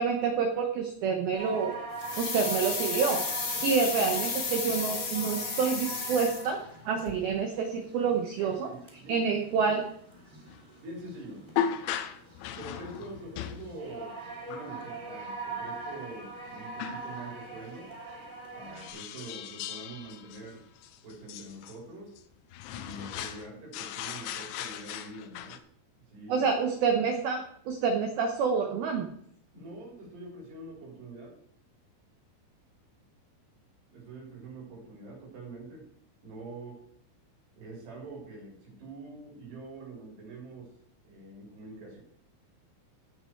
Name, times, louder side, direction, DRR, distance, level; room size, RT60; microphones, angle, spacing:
voice 1, 0.0-1.8 2.2-3.2 3.6-6.6 6.9-8.7 9.1-9.8 26.3-29.1, right 5 dB, 80° right, 3 dB, 2.1 m, -28 dB
sound 1, 1.3-18.9, right 3 dB, 15° right, 2.3 m, -43 dB
sound 2, 2.0-6.8 7.1-7.2, left 4 dB, 45° left, 1.8 m, -33 dB
voice 2, 8.4-9.4 10.8-11.5 12.6-14.1 14.4-17.9 18.6-20.6 21.0-22.2 22.7-25.6 26.1-26.5 29.5-31.3 33.9-35.9 36.2-36.8 37.6-40.7 41.0-42.0, right 2 dB, 55° right, -1 dB, 5.7 m, -45 dB
sound 3, 10.5-10.6 11.6-13.7 14.5-14.7 16.8-17.0 18.8-21.8 22.2-22.3 22.5-23.5 23.7-25.6, left 9 dB, 80° left, 2.9 m, -36 dB
17.0 x 6.2 x 4.6 m, 0.67 s
omnidirectional pair, 6.0 m